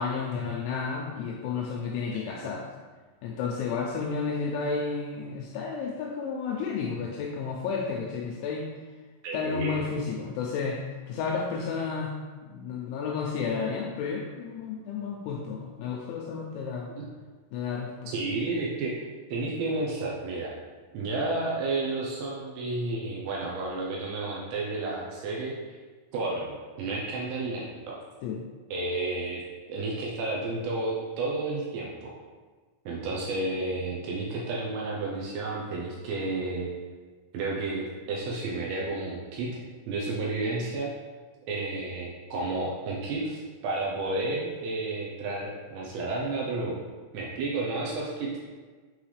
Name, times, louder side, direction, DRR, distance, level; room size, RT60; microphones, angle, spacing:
voice 1, 0.0-2.7 3.2-8.7 9.3-12.1 12.4-16.9 17.5-18.1 28.2-28.5, left 5 dB, 85° left, -1 dB, 2.8 m, -32 dB
voice 2, 9.2-9.7 17.0-17.1 18.1-18.9 19.3-20.6 20.9-25.5 26.1-28.0 28.7-29.4 29.7-32.2 32.9-36.7 37.3-39.6 39.9-40.9 41.5-46.8 47.1-48.4, right 2 dB, 80° right, -3 dB, 2.5 m, -31 dB
9.1 x 3.9 x 3.2 m, 1.4 s
omnidirectional pair, 5.7 m